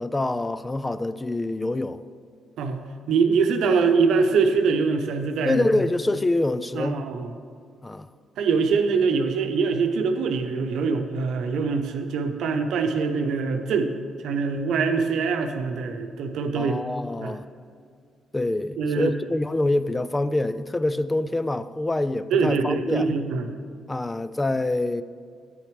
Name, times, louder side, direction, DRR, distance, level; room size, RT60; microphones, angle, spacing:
voice 1, 0.0-2.0 5.4-7.0 7.8-8.1 16.6-17.4 18.3-23.1 23.9-25.0, left 2 dB, 15° left, 0.3 m, -25 dB
voice 2, 3.1-5.8 6.7-7.3 8.4-13.9 14.2-16.8 17.2-17.4 18.8-19.2 22.3-23.5, right 5 dB, 80° right, 0.8 m, -23 dB
10.5 x 8.6 x 3.3 m
cardioid pair, 90°, 0 cm